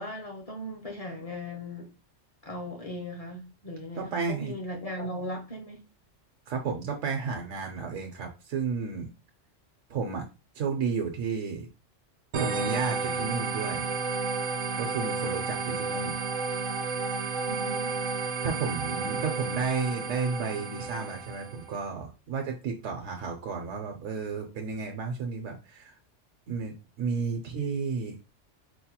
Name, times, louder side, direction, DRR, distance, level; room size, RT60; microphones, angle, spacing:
voice 1, 0.0-1.9 2.4-5.8 17.5-18.0, left 1 dB, 40° left, 0.5 m, -38 dB
voice 2, 3.9-4.6 6.5-9.1 9.9-10.3 10.5-11.7 12.4-13.9 14.8-16.1 18.4-25.9 26.5-28.2, right 5 dB, 85° right, 1.0 m, -32 dB
sound 1, 12.3-21.7, right 4 dB, 60° right, 0.6 m, -32 dB
4.6 x 2.2 x 2.8 m
omnidirectional pair, 1.3 m